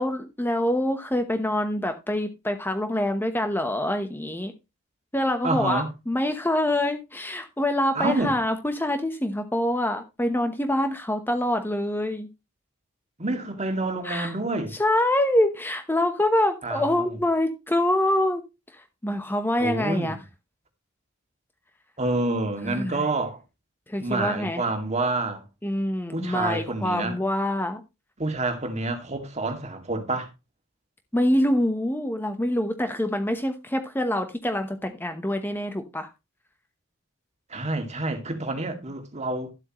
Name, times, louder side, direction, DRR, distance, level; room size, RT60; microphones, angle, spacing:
voice 1, 0.0-4.5 5.1-12.3 14.0-14.3 14.7-18.4 18.7-20.2 22.6-23.1 23.9-24.6 25.6-27.8 31.1-36.1, left 1 dB, 10° left, 1.0 m, -25 dB
voice 2, 5.4-5.9 7.9-8.3 13.2-14.8 16.6-17.2 19.6-20.2 22.0-23.4 24.0-25.4 26.1-27.2 28.2-30.3 37.5-39.5, right 2 dB, 35° right, 2.3 m, -28 dB
12.5 x 8.1 x 3.1 m
head